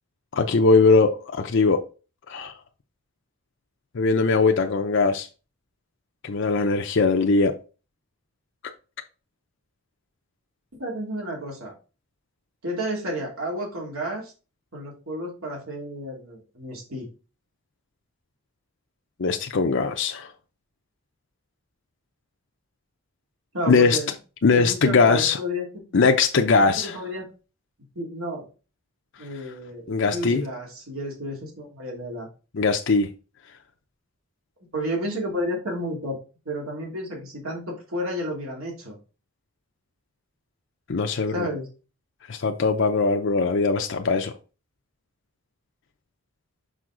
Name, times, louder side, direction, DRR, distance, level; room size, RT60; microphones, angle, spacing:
voice 1, 0.3-1.8 2.3-2.5 3.9-5.3 6.2-7.5 19.2-20.3 23.7-24.0 24.4-25.4 25.9-27.0 29.9-30.4 32.5-33.1 40.9-41.5 42.3-44.3, left 4 dB, 60° left, 0.6 m, -20 dB
voice 2, 10.8-11.7 12.6-14.3 14.7-17.1 23.5-24.1 24.5-25.9 26.6-27.3 27.9-28.5 29.2-32.3 34.7-36.2 36.5-39.0 41.3-41.7, equal, 85° right, 2.6 m, -31 dB
6.2 x 5.1 x 3.8 m
head